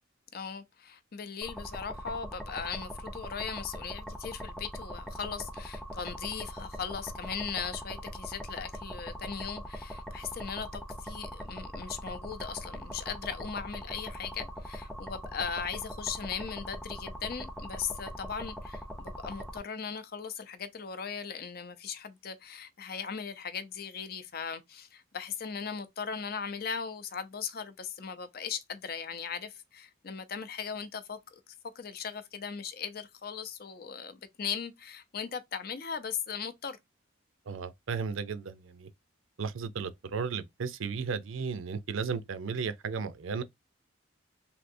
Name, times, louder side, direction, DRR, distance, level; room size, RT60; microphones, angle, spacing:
voice 1, 0.3-31.4 31.7-36.8, left 6 dB, 50° left, 0.5 m, -38 dB
sound 1, 1.4-19.6, equal, ahead, 0.4 m, -41 dB
voice 2, 37.5-38.9 39.4-43.4, right 5 dB, 75° right, 0.5 m, -34 dB
3.4 x 2.7 x 2.6 m
head